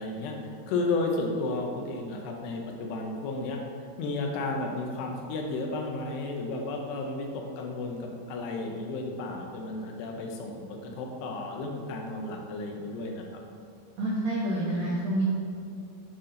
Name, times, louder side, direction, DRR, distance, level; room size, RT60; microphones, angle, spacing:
voice 1, 0.0-3.6 4.0-13.4, left 2 dB, 90° left, 1 dB, 2.9 m, -33 dB
voice 2, 14.0-15.2, right 1 dB, 75° right, -8 dB, 1.5 m, -28 dB
8.1 x 4.2 x 3.8 m, 2.4 s
omnidirectional pair, 4.6 m